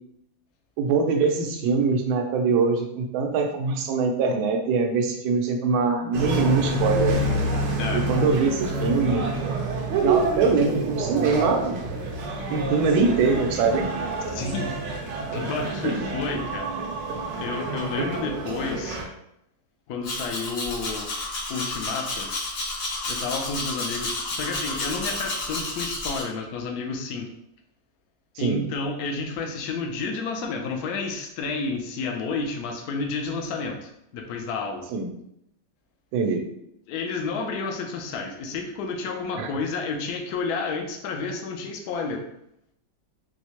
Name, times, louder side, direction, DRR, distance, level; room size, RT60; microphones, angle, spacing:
voice 1, 0.8-7.2 7.9-9.3 10.0-11.9 12.5-13.9 15.5-15.6 15.8-16.0 17.1-17.2 18.0-18.1 28.4-28.6 34.9-35.1 36.1-36.5 39.4-39.5, right 4 dB, 90° right, 3 dB, 1.4 m, -23 dB
sound 1, 6.1-19.0, right 2 dB, 75° right, 1.2 m, -28 dB
voice 2, 14.3-16.7 17.4-19.0 19.9-21.1 21.5-22.3 23.0-27.3 28.4-34.8 36.9-42.2, left 4 dB, 70° left, 3 dB, 0.9 m, -31 dB
Domestic sounds home sounds, 20.0-26.2, left 2 dB, 90° left, 0.5 m, -31 dB
4.5 x 2.1 x 2.9 m, 0.77 s
omnidirectional pair, 2.1 m